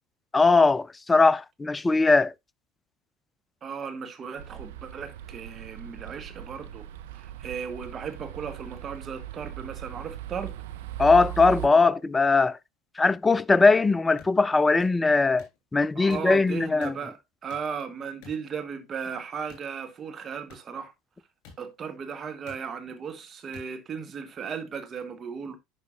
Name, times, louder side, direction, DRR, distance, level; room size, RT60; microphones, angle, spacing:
voice 1, 0.3-2.3 11.0-12.6 13.0-16.9, left 3 dB, 15° left, 0.4 m, -20 dB
voice 2, 3.6-6.8 7.1-10.5 15.8-20.9 21.6-25.6, right 6 dB, 35° right, 1.2 m, -36 dB
sound 1, 4.4-11.7, right 13 dB, 70° right, 0.7 m, -39 dB
sound 2, 14.2-14.3 14.8-15.0 15.4-15.6 16.1-16.3 16.8-17.0 17.5-17.7 18.2-18.4 19.5-19.7 20.5-20.6 21.4-21.6 22.5-22.6 23.5-23.7, left 5 dB, 55° left, 3.1 m, -48 dB
11.0 x 5.2 x 2.4 m
figure-of-eight pair, 70°, 0 cm